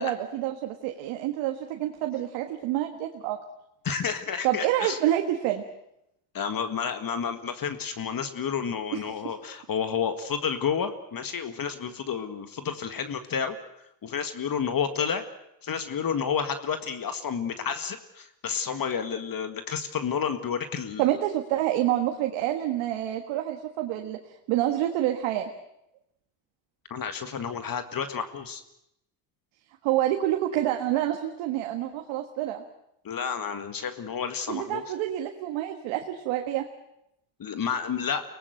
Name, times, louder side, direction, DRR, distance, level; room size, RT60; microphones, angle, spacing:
voice 1, 0.0-3.4 4.4-5.6 8.9-9.3 21.0-24.2 24.5-25.5 29.8-32.6 34.5-36.6, right 13 dB, 85° right, 4 dB, 1.7 m, -27 dB
voice 2, 3.8-5.0 6.3-13.6 14.0-15.2 15.6-21.1 26.9-28.6 33.0-34.8 37.4-38.2, left 7 dB, 45° left, 9 dB, 1.8 m, -30 dB
23.5 x 19.0 x 7.9 m, 0.80 s
supercardioid pair, 80°, 47 cm